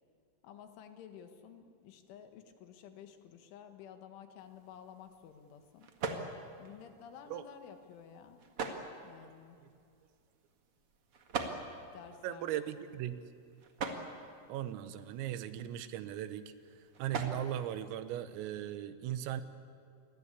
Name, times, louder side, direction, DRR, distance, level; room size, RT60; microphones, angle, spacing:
voice 1, 0.4-5.9 6.2-8.4 9.0-9.6 11.9-12.6, left 8 dB, 75° left, 7 dB, 3.8 m, -53 dB
sound 1, 4.4-18.7, right 4 dB, 65° right, 1.4 m, -45 dB
voice 2, 12.2-13.1 14.5-16.5 17.0-19.4, right 11 dB, 85° right, 12 dB, 3.7 m, -38 dB
28.0 x 21.5 x 8.4 m, 2.3 s
omnidirectional pair, 5.9 m